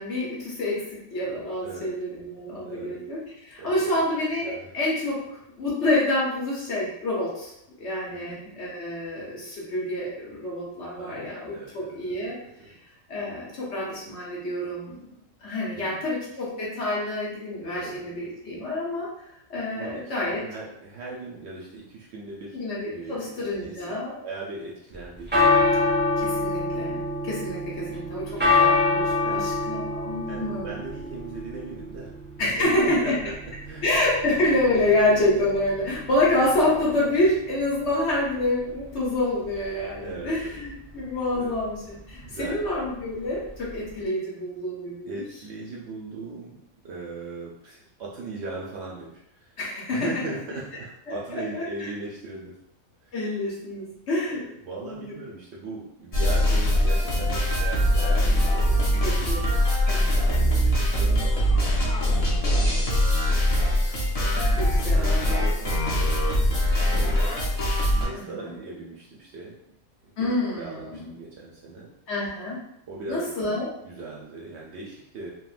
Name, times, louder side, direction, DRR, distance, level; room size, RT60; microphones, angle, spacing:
voice 1, 0.0-3.2 3.5-7.5 7.8-12.4 13.1-15.1 15.4-19.1 19.5-20.4 22.5-24.2 26.2-30.7 32.4-33.1 33.8-45.2 49.6-50.1 51.5-51.6 53.1-54.4 54.8-55.1 58.0-58.5 59.0-60.5 64.6-65.4 68.1-68.6 70.2-71.1 72.1-72.6 73.1-73.7, left 1 dB, 60° left, -6 dB, 1.2 m, -27 dB
voice 2, 2.6-3.0 3.6-4.0 4.4-4.7 8.1-8.5 11.0-12.8 15.7-16.1 17.7-18.1 19.7-22.6 22.9-23.8 24.2-25.9 27.8-27.9 29.1-29.5 30.3-32.2 32.6-33.3 33.6-33.8 40.0-40.6 41.3-41.5 42.2-42.6 45.1-49.6 49.9-52.5 53.0-53.2 54.6-58.9 60.2-61.6 62.0-63.0 64.9-66.4 66.7-69.6 70.2-71.9 72.9-73.3 73.8-75.3, right 3 dB, 65° right, -4 dB, 0.7 m, -39 dB
sound 1, 24.9-44.0, left 3 dB, 15° right, 0.4 m, -28 dB
sound 2, 56.1-68.1, equal, 40° left, 0.5 m, -22 dB
3.6 x 2.1 x 2.4 m, 0.78 s
omnidirectional pair, 1.4 m